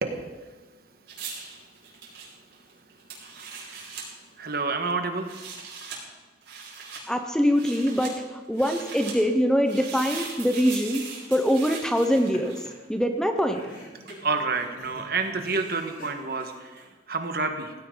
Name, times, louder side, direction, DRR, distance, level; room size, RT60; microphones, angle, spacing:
sound 1, 1.1-4.1 5.1-6.0 6.4-7.0 7.5-8.1 8.5-9.2 9.7-12.9 14.1-14.2, right 5 dB, 90° right, 5.5 m, -40 dB
voice 1, 4.3-5.4 14.2-17.7, right 4 dB, 55° right, 5 dB, 1.6 m, -29 dB
voice 2, 7.1-11.0 11.3-12.6 12.9-13.6, equal, 5° left, 5 dB, 0.9 m, -23 dB
sound 2, 11.8-12.4 12.7-12.8 13.4-16.9, left 1 dB, 45° left, 3.4 m, -46 dB
18.0 x 16.5 x 4.0 m, 1.3 s
head